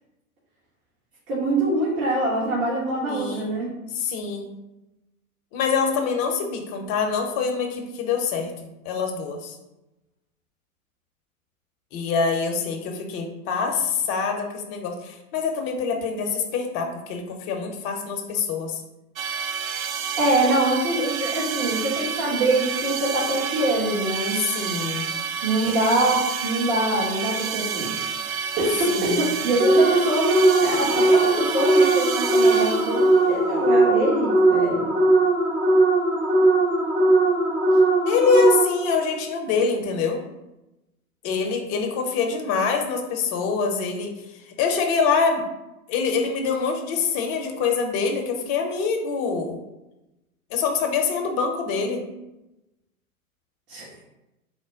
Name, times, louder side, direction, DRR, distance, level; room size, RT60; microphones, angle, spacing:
voice 1, 1.3-3.7 20.2-24.4 25.4-27.9 28.6-34.9 53.7-53.9, right 1 dB, 40° right, -7 dB, 1.4 m, -24 dB
voice 2, 3.1-3.6 3.9-4.5 5.5-9.6 11.9-18.8 24.4-25.1 25.6-25.7 28.9-29.3 38.0-40.2 41.2-45.4 45.9-49.6 50.5-52.0, left 5 dB, 35° left, 3 dB, 0.7 m, -25 dB
sound 1, 19.2-33.3, right 7 dB, 70° right, 0.5 m, -29 dB
sound 2, 29.6-39.0, right 2 dB, 15° right, 0.6 m, -19 dB
4.2 x 2.1 x 4.6 m, 0.97 s
figure-of-eight pair, 100°, 43 cm